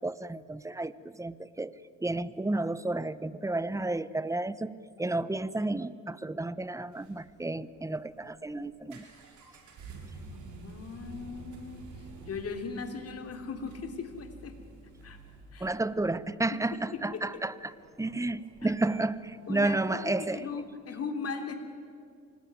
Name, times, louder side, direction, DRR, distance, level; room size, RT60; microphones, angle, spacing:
voice 1, 0.0-1.7 2.0-4.7 5.0-9.1 15.6-17.5 18.0-20.5, right 2 dB, 10° right, 16 dB, 0.9 m, -31 dB
sound 1, 6.7-20.5, right 3 dB, 75° right, 5.4 m, -51 dB
voice 2, 10.3-11.8 12.3-14.6 15.0-15.2 15.5-15.7 16.5-17.0 18.6-18.7 19.5-21.5, left 5 dB, 50° left, 6 dB, 3.3 m, -38 dB
26.0 x 19.0 x 9.6 m, 2.3 s
cardioid pair, 90°, 30 cm